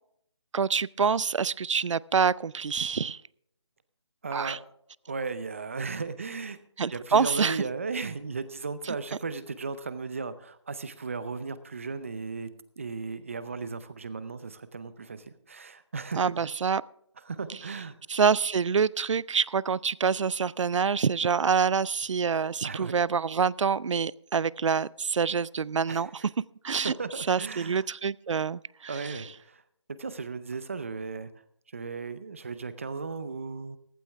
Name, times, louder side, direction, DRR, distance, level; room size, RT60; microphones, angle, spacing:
voice 1, 0.5-3.2 4.3-4.6 6.8-7.6 16.2-16.8 18.1-26.1 26.6-26.9 27.3-28.6, right 6 dB, 85° right, 23 dB, 0.4 m, -26 dB
voice 2, 4.2-4.6 5.1-6.6 6.9-12.5 12.8-16.5 17.2-18.0 22.6-22.9 25.9-26.3 26.7-27.9 28.9-29.6 30.0-31.3 31.7-33.8, right 4 dB, 25° right, 14 dB, 0.6 m, -36 dB
15.0 x 13.0 x 3.4 m, 0.71 s
figure-of-eight pair, 170°, 15 cm